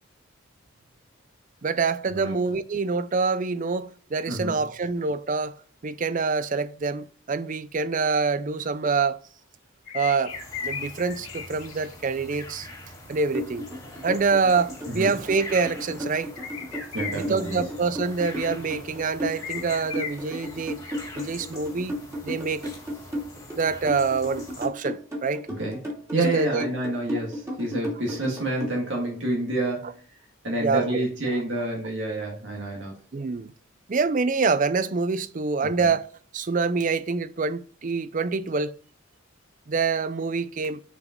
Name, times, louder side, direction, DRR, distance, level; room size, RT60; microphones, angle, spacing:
voice 1, 1.6-9.2 9.9-12.7 13.1-13.7 14.0-16.3 17.1-20.8 21.1-22.0 22.2-22.7 23.6-25.5 26.2-26.7 30.6-31.0 31.3-31.7 33.1-33.5 33.9-36.1 36.3-38.8 39.7-40.8, right 4 dB, 40° right, 0.4 m, -26 dB
voice 2, 4.3-4.6 14.9-15.1 16.9-17.6 25.6-30.0 30.4-32.9, right 2 dB, 60° right, 1.8 m, -28 dB
sound 1, 9.9-12.2 12.4-12.5 14.4-14.8 15.5-15.6 16.4-17.9 18.6-18.9 19.3-20.8 21.3-21.4, left 6 dB, 80° left, 2.6 m, -37 dB
sound 2, 10.3-24.7, left 1 dB, 15° left, 1.8 m, -44 dB
sound 3, 13.3-28.7, equal, 15° right, 2.5 m, -33 dB
6.7 x 5.0 x 5.1 m
head